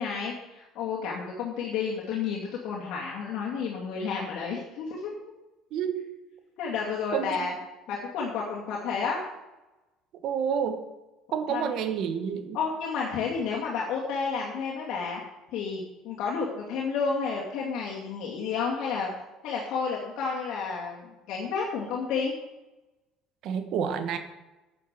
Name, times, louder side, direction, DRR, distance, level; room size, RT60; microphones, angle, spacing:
voice 1, 0.0-5.3 6.6-7.5 7.9-9.2 11.5-11.7 12.5-15.2 15.5-19.1 19.4-22.3, left 5 dB, 65° left, -4 dB, 2.4 m, -31 dB
voice 2, 5.7-6.1 7.1-7.5 10.2-10.8 11.3-12.6 23.4-24.2, right 7 dB, 60° right, 8 dB, 1.4 m, -29 dB
8.7 x 8.5 x 6.8 m, 1.0 s
cardioid pair, 125°, 0 cm